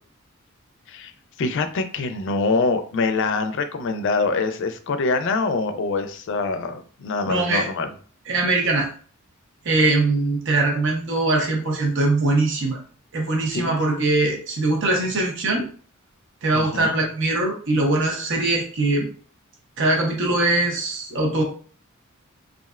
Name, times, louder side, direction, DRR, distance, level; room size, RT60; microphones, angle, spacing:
voice 1, 1.4-7.9 13.5-13.8 16.5-17.0, left 3 dB, 60° left, 7 dB, 0.4 m, -24 dB
voice 2, 7.3-7.7 8.3-8.9 9.6-12.8 13.1-15.7 16.4-19.1 19.8-21.4, right 2 dB, 60° right, 0 dB, 0.8 m, -21 dB
3.1 x 2.5 x 2.4 m, 0.43 s
head